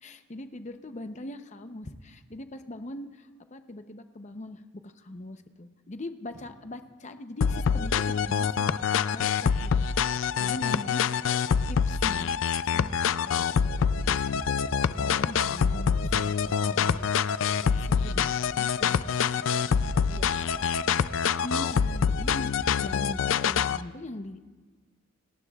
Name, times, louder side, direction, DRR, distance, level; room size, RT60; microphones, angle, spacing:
voice 1, 0.0-8.8 9.1-11.2 11.7-12.4 12.6-17.1 17.6-18.9 21.4-24.5, left 1 dB, 35° left, 8 dB, 0.7 m, -41 dB
sound 1, 7.4-23.8, left 6 dB, 75° left, 0.4 m, -26 dB
voice 2, 10.4-10.8 18.8-20.8, equal, 65° right, 0 dB, 3.8 m, -50 dB
29.5 x 18.0 x 2.4 m, 1.4 s
head